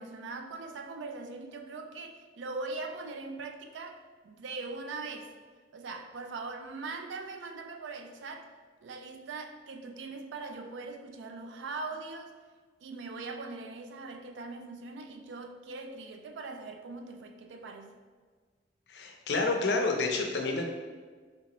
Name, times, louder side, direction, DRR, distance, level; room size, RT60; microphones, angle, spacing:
voice 1, 0.0-4.0 4.2-5.3 5.7-8.5 8.8-12.3 12.8-17.9, right 3 dB, 85° right, 5 dB, 0.4 m, -41 dB
voice 2, 18.9-20.7, left 3 dB, 65° left, 3 dB, 0.5 m, -29 dB
3.9 x 3.3 x 3.0 m, 1.5 s
head